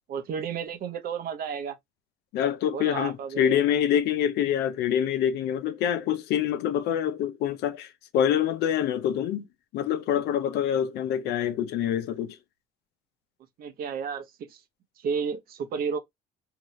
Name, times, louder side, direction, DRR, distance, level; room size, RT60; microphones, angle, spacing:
voice 1, 0.1-1.8 2.7-3.6 13.6-14.6 15.0-16.0, right 6 dB, 60° right, 0.8 m, -32 dB
voice 2, 2.3-9.4 9.7-12.4, left 9 dB, 80° left, 0.6 m, -26 dB
2.8 x 2.4 x 3.0 m
cardioid pair, 110°, 17 cm